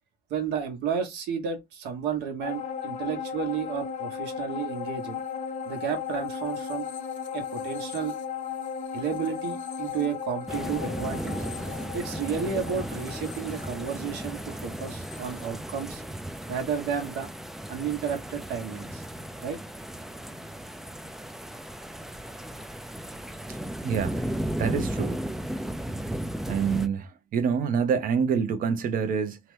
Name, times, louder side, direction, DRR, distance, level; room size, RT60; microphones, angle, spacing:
voice 1, 0.3-5.2 5.7-6.8 7.3-8.2 8.9-11.3 11.9-16.0 16.5-17.3 17.7-19.0 19.4-19.6, right 7 dB, 85° right, 1.1 m, -32 dB
sound 1, 2.4-16.1 16.5-16.6, left 7 dB, 50° left, 0.8 m, -36 dB
sound 2, 10.5-26.9, right 1 dB, ahead, 0.3 m, -35 dB
voice 2, 23.8-24.3 24.6-25.2 26.5-29.4, right 6 dB, 55° right, 0.7 m, -26 dB
2.8 x 2.1 x 3.2 m
cardioid pair, 110°, 17 cm